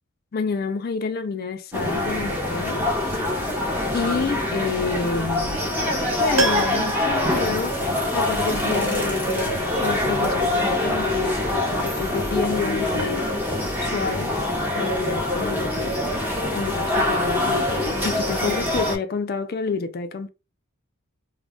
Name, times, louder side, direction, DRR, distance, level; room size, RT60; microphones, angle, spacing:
voice 1, 0.3-2.8 3.9-5.7 6.2-7.8 8.1-11.4 11.8-13.3 13.8-16.0 16.5-20.3, left 4 dB, 45° left, 0.4 m, -29 dB
sound 1, 1.7-19.0, left 1 dB, 10° right, 0.7 m, -24 dB
Piano, 6.4-8.4 8.7-8.8, right 3 dB, 85° right, 0.7 m, -29 dB
2.3 x 2.1 x 3.6 m
head